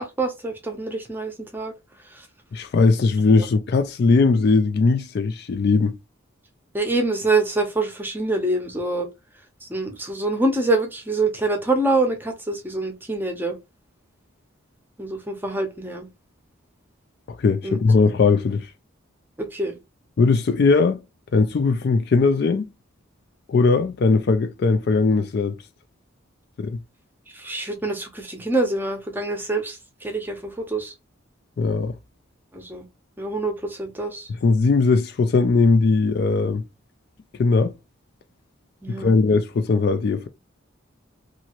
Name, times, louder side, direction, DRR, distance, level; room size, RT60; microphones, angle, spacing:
voice 1, 0.0-1.7 2.1-2.3 6.7-9.1 9.6-13.6 15.0-16.1 17.6-17.8 19.4-19.7 27.3-30.9 32.5-32.8 33.2-34.3 38.8-39.2, right 2 dB, 10° right, 0.7 m, -25 dB
voice 2, 2.5-6.0 17.4-18.7 20.2-21.0 21.3-22.7 23.5-25.6 26.6-26.8 31.6-31.9 34.4-36.6 37.4-37.7 39.0-40.3, left 4 dB, 50° left, 0.3 m, -19 dB
2.9 x 2.5 x 2.9 m
head